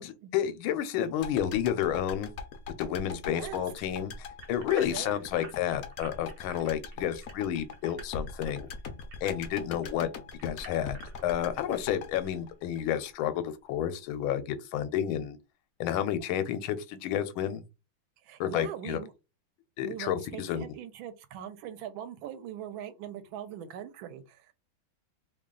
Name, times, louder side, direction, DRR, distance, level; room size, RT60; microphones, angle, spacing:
voice 1, 0.0-2.3 2.8-8.7 9.2-10.1 10.4-15.4 15.8-17.6 18.4-19.0 19.8-20.6, left 10 dB, 85° left, 1.4 m, -31 dB
sound 1, 1.2-13.4 13.7-13.8, left 4 dB, 70° left, 0.8 m, -42 dB
voice 2, 3.3-3.6 4.9-5.2 18.2-19.1 19.8-24.5, right 9 dB, 80° right, 1.3 m, -41 dB
sound 2, 4.4-9.9 10.3-11.7 12.2-12.3 12.9-13.0, right 4 dB, 60° right, 1.3 m, -49 dB
3.3 x 2.3 x 3.7 m
omnidirectional pair, 2.2 m